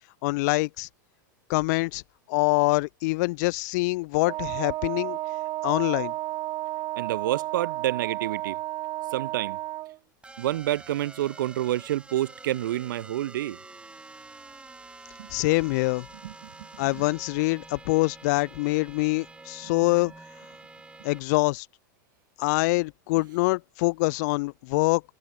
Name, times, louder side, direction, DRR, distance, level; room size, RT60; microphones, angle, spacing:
voice 1, 0.2-0.9 1.5-2.0 2.3-5.2 5.6-6.1 15.3-16.1 16.8-20.1 21.0-21.7 22.4-25.0, left 24 dB, 60° left, 0.4 m, -25 dB
Wind instrument woodwind instrument, 4.2-10.0, right 16 dB, 40° right, 0.8 m, -32 dB
voice 2, 7.0-8.6 9.1-9.6 10.4-13.6 15.2-15.3 16.2-16.7 16.9-17.1, right 14 dB, 75° right, 1.1 m, -29 dB
sound 1, 10.2-21.2, right 3 dB, 10° right, 3.9 m, -47 dB
hypercardioid pair, 115°, 11 cm